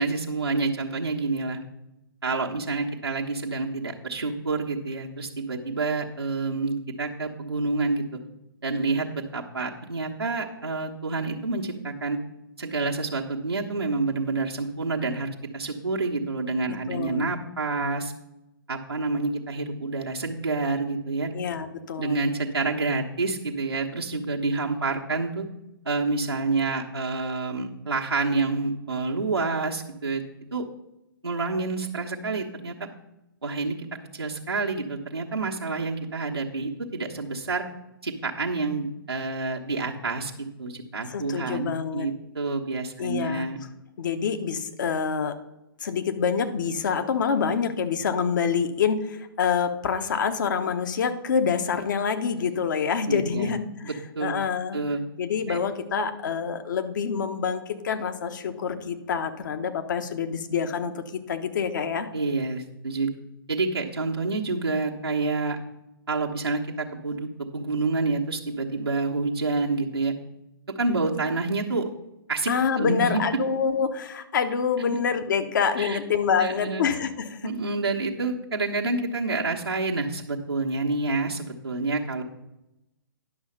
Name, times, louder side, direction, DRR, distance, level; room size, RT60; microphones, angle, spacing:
voice 1, 0.0-1.6 2.2-8.2 8.6-12.2 12.6-18.1 18.7-21.3 22.0-25.5 25.8-30.2 30.5-30.6 31.2-32.7 33.4-33.8 34.1-37.6 38.0-40.3 40.6-43.6 53.0-53.5 53.8-54.4 54.7-55.0 55.5-55.6 62.1-63.1 63.5-65.6 66.1-70.1 70.8-71.8 72.3-72.5 72.8-73.2 74.9-75.0 75.8-76.0 76.4-76.8 77.4-82.2, right 3 dB, 90° right, -3 dB, 1.2 m, -28 dB
voice 2, 16.9-17.3 21.3-22.2 41.1-42.1 43.0-43.5 44.0-45.4 45.8-53.9 54.2-54.8 55.2-62.1 72.5-77.5, left 6 dB, 55° left, 8 dB, 1.1 m, -26 dB
10.5 x 6.4 x 5.5 m, 0.89 s
figure-of-eight pair, 125°, 12 cm